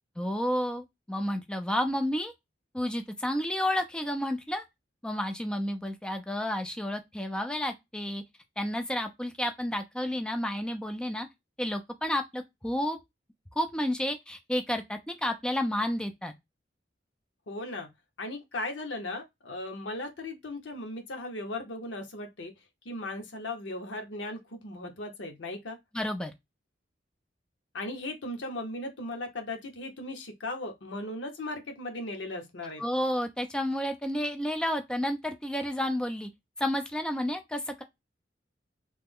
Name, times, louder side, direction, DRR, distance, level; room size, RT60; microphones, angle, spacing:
voice 1, 0.2-2.3 2.7-4.6 5.0-8.2 8.6-11.3 11.6-13.0 13.6-16.3 25.9-26.3 32.8-36.3 36.6-37.8, left 1 dB, 5° left, 0.3 m, -31 dB
voice 2, 17.5-17.9 18.2-22.5 22.8-25.8 27.7-32.8, left 2 dB, 90° left, 0.8 m, -37 dB
3.2 x 2.0 x 3.4 m
head